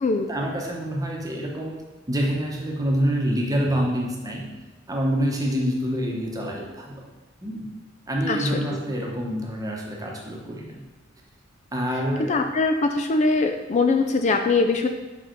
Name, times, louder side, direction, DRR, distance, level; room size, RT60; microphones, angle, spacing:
voice 1, 0.3-1.8 2.1-4.5 4.9-7.1 7.4-7.7 8.1-10.8 11.7-12.3, equal, 20° right, -1 dB, 1.0 m, -26 dB
voice 2, 8.3-8.8 12.3-14.9, left 3 dB, 35° left, 6 dB, 0.3 m, -22 dB
5.6 x 4.7 x 4.5 m, 1.2 s
head